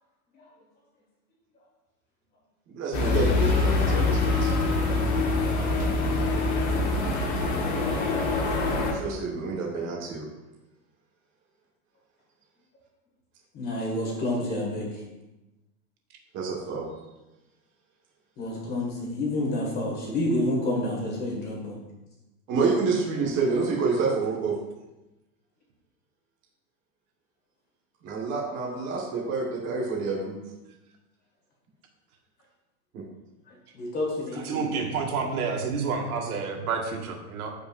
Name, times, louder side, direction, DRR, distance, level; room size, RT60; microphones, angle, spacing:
voice 1, 2.7-4.5 8.6-10.2 16.3-16.9 22.5-24.5 28.0-30.4 32.9-33.0, right 4 dB, 25° right, -4 dB, 1.5 m, -28 dB
sound 1, 2.9-8.9, left 3 dB, 45° left, 1.7 m, -24 dB
voice 2, 13.5-14.9 18.4-21.8 33.7-34.8, left 1 dB, 20° left, -2 dB, 1.9 m, -29 dB
voice 3, 34.3-37.5, right 5 dB, 75° right, 2 dB, 1.8 m, -29 dB
14.5 x 5.2 x 2.6 m, 1.0 s
supercardioid pair, 170°, 45 cm